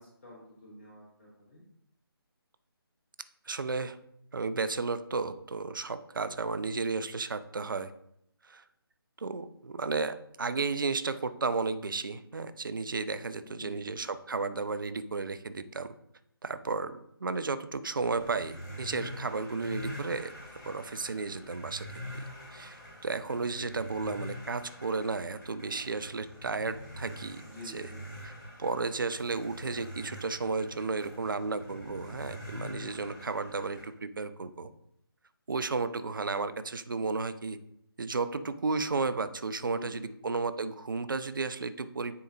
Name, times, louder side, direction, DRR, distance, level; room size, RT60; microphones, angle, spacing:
voice 1, 0.0-1.6 13.4-14.0 27.4-28.0 39.7-40.1, left 1 dB, 30° left, -5 dB, 1.1 m, -48 dB
voice 2, 3.5-4.0 4.3-7.9 8.4-8.6 9.2-15.9 16.4-27.9 28.2-28.3 28.6-34.7 35.5-37.6 38.0-42.2, right 4 dB, 55° right, 11 dB, 0.5 m, -33 dB
sound 1, 18.0-33.9, equal, 50° left, 2.4 m, -45 dB
9.5 x 3.8 x 2.6 m, 0.74 s
figure-of-eight pair, 150°, 13 cm